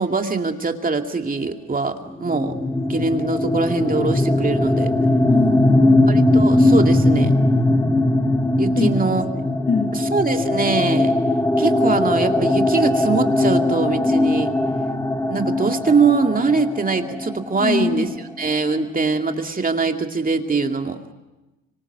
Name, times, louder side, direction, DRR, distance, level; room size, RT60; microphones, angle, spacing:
voice 1, 0.0-2.6 2.8-4.9 6.1-7.4 8.6-9.2 9.9-11.2 11.6-14.5 15.3-18.1 18.4-21.0, right 4 dB, 30° right, 4 dB, 2.4 m, -22 dB
sound 1, 2.2-17.9, left 1 dB, 10° left, 1.7 m, -19 dB
voice 2, 5.3-6.1 8.7-9.0 9.7-10.0 17.6-18.1, left 5 dB, 35° left, 6 dB, 1.8 m, -23 dB
25.0 x 25.0 x 8.1 m, 1.1 s
cardioid pair, 90°, 30 cm